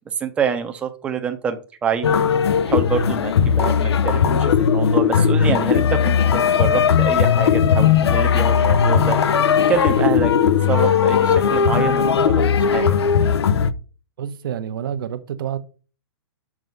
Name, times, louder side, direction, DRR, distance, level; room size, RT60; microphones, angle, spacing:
voice 1, 0.1-2.2 2.7-9.4 9.7-10.3 10.7-12.4 12.7-13.0, right 6 dB, 10° right, 0.7 m, -26 dB
sound 1, 2.0-13.7, left 7 dB, 90° left, 0.6 m, -17 dB
voice 2, 14.2-15.6, right 9 dB, 55° right, 0.9 m, -28 dB
6.2 x 5.4 x 5.2 m
hypercardioid pair, 170°, 13 cm